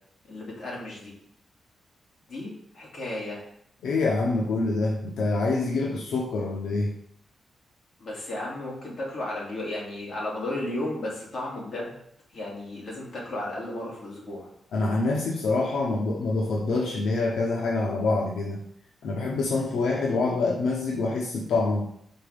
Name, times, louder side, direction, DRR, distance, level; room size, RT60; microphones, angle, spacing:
voice 1, 0.3-1.1 2.3-3.4 8.0-12.0 12.3-14.5, left 1 dB, 50° left, -4 dB, 2.8 m, -34 dB
voice 2, 3.8-6.9 14.7-18.6 19.0-21.9, left 3 dB, 90° left, -1 dB, 0.9 m, -26 dB
5.7 x 4.3 x 5.1 m, 0.71 s
wide cardioid pair, 140°, 0 cm